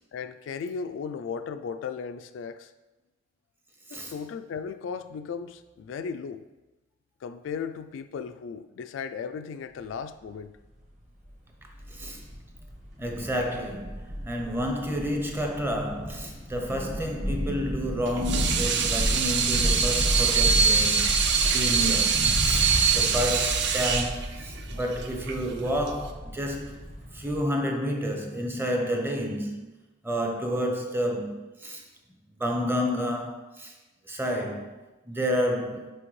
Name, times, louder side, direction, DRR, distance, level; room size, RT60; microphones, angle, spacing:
voice 1, 0.1-2.7 3.9-6.4 7.2-10.5, left 6 dB, 80° left, 0.3 m, -36 dB
sound 1, 10.6-10.7 11.0-11.3 11.6-27.4, equal, 40° right, 1.1 m, -32 dB
voice 2, 11.9-12.2 13.0-26.8 27.1-29.7 30.0-31.8 32.4-33.7 34.1-34.7 35.1-35.9, equal, 10° right, 0.6 m, -30 dB
Water tap faucet / Sink (filling or washing), 18.1-26.1, right 6 dB, 60° right, 0.4 m, -24 dB
6.1 x 5.0 x 3.1 m
head